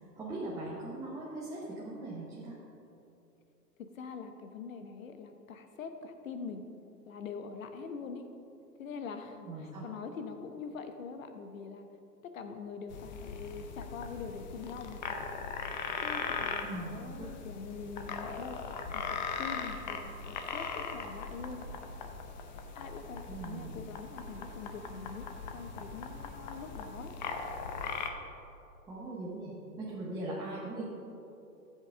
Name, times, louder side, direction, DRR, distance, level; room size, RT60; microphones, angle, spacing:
voice 1, 0.2-2.6 9.5-9.9 16.6-17.3 23.3-23.7 28.9-30.8, right 2 dB, 5° right, -8 dB, 0.9 m, -40 dB
voice 2, 3.8-6.7 7.1-8.3 8.8-11.8 12.2-15.0 16.0-18.6 18.9-21.7 22.7-27.1, left 5 dB, 50° left, 7 dB, 1.0 m, -44 dB
sound 1, 12.9-28.1, left 5 dB, 30° left, 0.6 m, -39 dB
13.5 x 7.6 x 3.7 m, 2.8 s
figure-of-eight pair, 120°, 50 cm